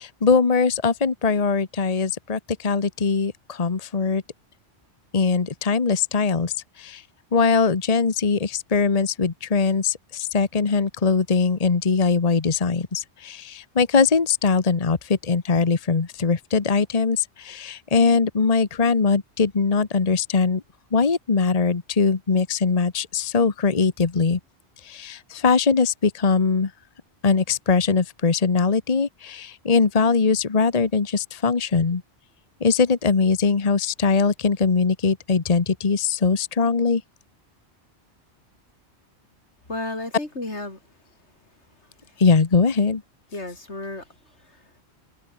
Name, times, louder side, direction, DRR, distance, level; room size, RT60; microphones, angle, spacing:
voice 1, 0.0-4.2 5.1-7.0 7.3-20.6 20.9-24.4 24.8-26.7 27.2-32.0 32.6-37.0 42.2-43.0, left 5 dB, 35° left, 1.1 m, -21 dB
voice 2, 39.7-40.8 41.8-42.2 43.3-44.8, left 2 dB, 85° left, 5.5 m, -34 dB
omnidirectional pair, 1.1 m